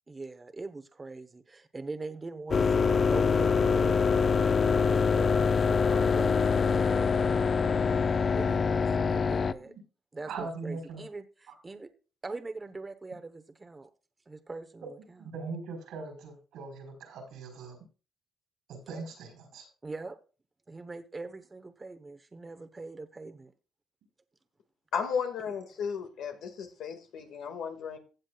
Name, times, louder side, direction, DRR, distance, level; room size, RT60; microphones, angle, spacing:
voice 1, 0.1-4.0 4.7-7.8 8.3-9.7 10.1-11.9 12.2-13.9 14.3-15.2 19.8-20.2 20.7-23.5, right 3 dB, 25° right, 1.0 m, -42 dB
sound 1, 2.5-9.5, left 5 dB, 45° left, 0.5 m, -25 dB
voice 2, 9.4-9.8 10.2-11.0 15.0-17.8 18.7-19.7, right 4 dB, 85° right, 4.3 m, -41 dB
voice 3, 24.9-28.0, left 6 dB, 80° left, 1.9 m, -34 dB
15.5 x 7.5 x 2.4 m
cardioid pair, 90°, 0 cm